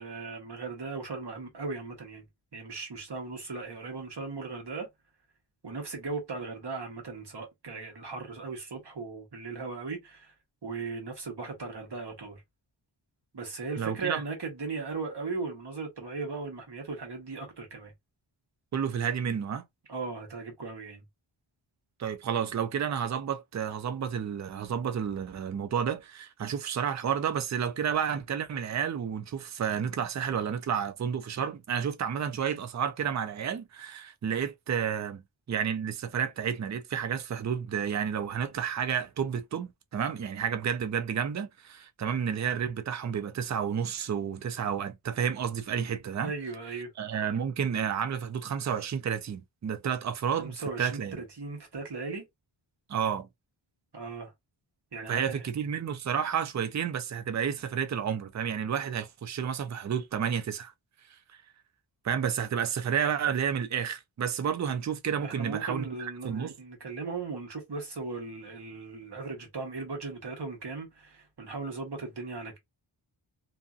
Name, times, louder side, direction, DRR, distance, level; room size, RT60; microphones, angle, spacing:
voice 1, 0.0-2.2 2.5-4.9 5.6-10.3 10.6-12.4 13.3-17.9 19.9-21.0 46.2-46.9 50.4-52.3 53.9-54.3 54.9-55.4 65.2-72.6, right 4 dB, 55° right, 1.2 m, -37 dB
voice 2, 13.8-14.2 18.7-19.6 22.0-35.2 35.5-46.3 47.0-51.2 52.9-53.3 55.1-60.7 62.0-66.5, right 7 dB, 40° right, 0.4 m, -31 dB
2.6 x 2.6 x 2.3 m
wide cardioid pair, 105°, 49 cm